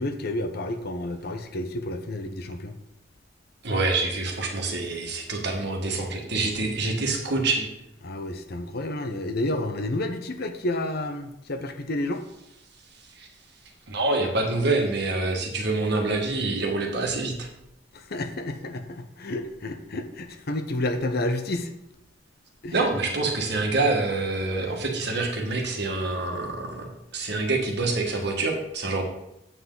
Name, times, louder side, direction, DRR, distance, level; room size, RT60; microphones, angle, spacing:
voice 1, 0.0-2.7 8.0-12.2 17.9-21.7 22.6-22.9, left 1 dB, 55° left, 7 dB, 0.8 m, -30 dB
voice 2, 3.6-7.7 13.2-13.3 13.9-17.5 22.7-29.0, right 3 dB, 65° right, 2 dB, 1.6 m, -26 dB
8.1 x 7.7 x 3.9 m, 0.83 s
head